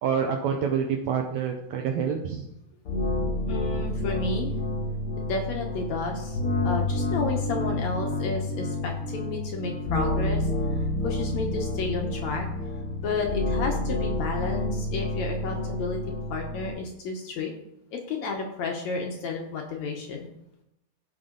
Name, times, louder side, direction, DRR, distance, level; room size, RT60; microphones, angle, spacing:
voice 1, 0.0-2.5, right 7 dB, 75° right, 3 dB, 1.7 m, -27 dB
sound 1, 2.8-16.7, left 2 dB, 45° left, 2.2 m, -29 dB
voice 2, 3.5-4.5 5.3-6.4 6.6-12.5 13.0-16.0 16.3-17.5 17.9-20.3, left 3 dB, 65° left, 2 dB, 1.9 m, -32 dB
15.5 x 5.5 x 3.8 m, 0.84 s
omnidirectional pair, 4.1 m